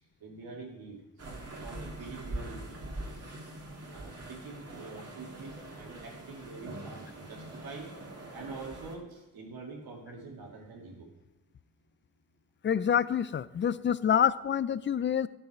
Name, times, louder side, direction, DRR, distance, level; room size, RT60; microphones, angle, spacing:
voice 1, 0.2-1.0 1.5-3.3 3.7-7.9 8.3-11.1, right 3 dB, 90° right, -1 dB, 2.3 m, -45 dB
sound 1, 1.2-9.0, right 1 dB, 45° right, 2.5 m, -43 dB
voice 2, 12.6-15.3, left 8 dB, 35° left, 17 dB, 0.4 m, -27 dB
10.5 x 6.7 x 4.9 m, 0.94 s
cardioid pair, 65°, 35 cm